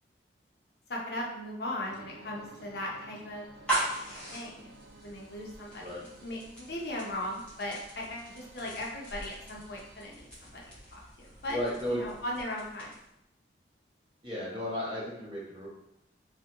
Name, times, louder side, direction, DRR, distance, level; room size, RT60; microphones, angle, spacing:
voice 1, 0.9-3.5 4.3-11.6 11.9-12.9, left 1 dB, 65° left, -2 dB, 0.6 m, -38 dB
sound 1, 1.9-10.1, right 2 dB, 85° right, 0.4 m, -54 dB
sound 2, 3.5-13.2, right 1 dB, 5° left, 1.0 m, -40 dB
voice 2, 11.5-12.0 14.2-15.7, equal, 25° right, -6 dB, 0.9 m, -34 dB
3.4 x 2.1 x 2.9 m, 0.83 s
head